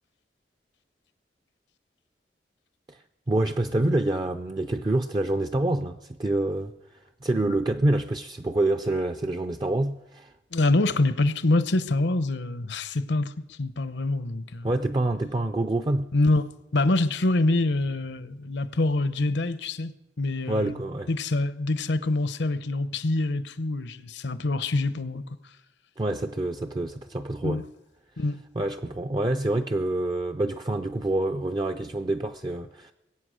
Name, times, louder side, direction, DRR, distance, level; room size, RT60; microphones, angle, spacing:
voice 1, 2.9-10.3 14.6-16.1 20.5-21.1 26.0-27.6 28.6-32.9, right 2 dB, 25° right, 0.4 m, -27 dB
voice 2, 10.5-14.7 16.1-16.4 16.7-19.9 20.2-20.8 21.1-25.2 27.4-27.6 28.2-28.4, left 2 dB, 70° left, 0.8 m, -25 dB
21.5 x 8.4 x 6.3 m
head